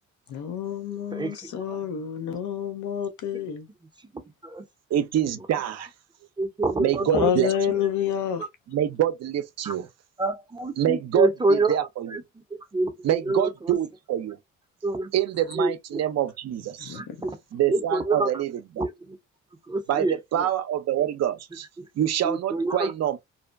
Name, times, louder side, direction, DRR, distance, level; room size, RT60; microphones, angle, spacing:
voice 1, 0.3-3.7 7.1-8.4 16.8-17.2, left 8 dB, 75° left, 0.7 m, -28 dB
voice 2, 1.1-1.8 4.1-4.6 6.4-7.3 8.4-8.5 9.6-9.7 10.2-11.8 12.1-12.2 12.5-13.8 14.8-15.1 15.5-16.0 16.9-17.4 17.7-18.3 18.8-19.2 19.7-20.5 21.8-21.9 22.2-22.9, right 2 dB, 15° right, 0.6 m, -27 dB
voice 3, 4.9-5.9 6.8-7.8 8.7-9.9 10.8-12.2 13.0-14.4 15.1-17.0 17.5-18.8 19.9-21.7 22.0-23.2, right 11 dB, 60° right, 0.6 m, -26 dB
2.7 x 2.1 x 2.5 m
cardioid pair, 90°, 30 cm